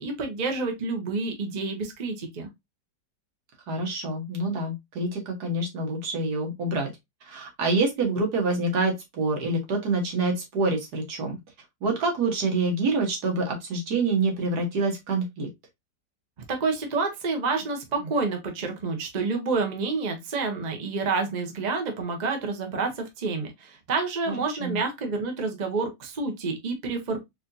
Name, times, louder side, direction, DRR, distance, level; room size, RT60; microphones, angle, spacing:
voice 1, 0.0-2.5 16.5-27.2, right 4 dB, 35° right, 0.7 m, -28 dB
voice 2, 3.7-6.9 7.2-11.4 11.8-15.5 24.3-24.4 24.6-24.8, right 3 dB, 70° right, 1.7 m, -26 dB
4.4 x 2.8 x 2.5 m
omnidirectional pair, 1.8 m